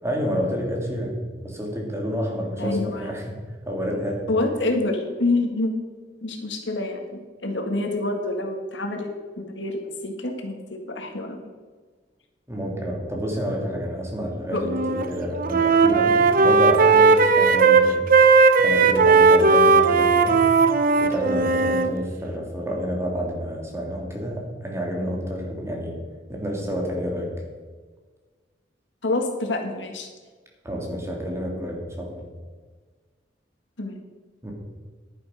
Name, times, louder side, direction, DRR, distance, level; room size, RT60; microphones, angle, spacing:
voice 1, 0.0-3.4 3.7-4.3 12.5-18.1 18.6-20.5 21.0-26.0 26.3-27.3 30.6-32.3 34.4-34.5, equal, 15° right, -1 dB, 2.6 m, -29 dB
voice 2, 2.6-3.1 4.3-5.7 6.2-11.5 14.5-14.6 29.0-30.1 33.8-34.0, left 2 dB, 80° left, 3 dB, 1.8 m, -27 dB
Wind instrument woodwind instrument, 14.6-15.1 15.3-21.9, right 4 dB, 50° right, 0.8 m, -17 dB
11.0 x 10.0 x 4.9 m, 1.4 s
head